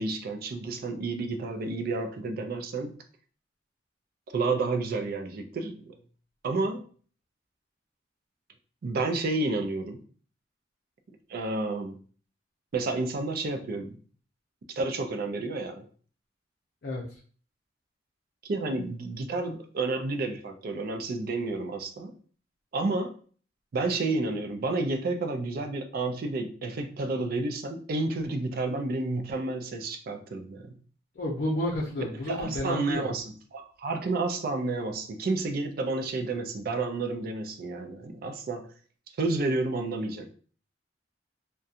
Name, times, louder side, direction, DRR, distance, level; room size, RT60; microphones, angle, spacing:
voice 1, 0.0-2.9 4.3-6.0 6.4-6.8 8.8-10.0 11.3-12.0 12.7-14.0 14.7-15.9 18.4-22.1 22.7-23.1 23.7-30.7 32.3-33.2 33.5-38.7 39.2-40.3, right 3 dB, 55° right, 7 dB, 0.4 m, -30 dB
voice 2, 16.8-17.2 31.1-33.1, left 1 dB, 55° left, -5 dB, 0.5 m, -31 dB
2.7 x 2.2 x 2.4 m, 0.43 s
head